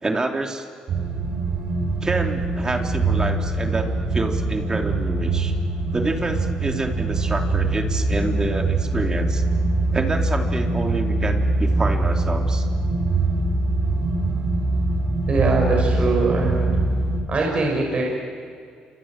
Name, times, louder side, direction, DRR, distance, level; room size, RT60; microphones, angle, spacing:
voice 1, 0.0-0.6 2.0-5.5 5.9-9.4 9.9-12.7, right 2 dB, 25° right, 3 dB, 3.3 m, -27 dB
sound 1, 0.9-17.2, right 2 dB, 65° right, 5.4 m, -23 dB
voice 2, 15.3-16.8 17.3-18.0, right 3 dB, 40° right, -1 dB, 6.4 m, -22 dB
29.0 x 26.0 x 7.6 m, 2.2 s
supercardioid pair, 70°, 3 cm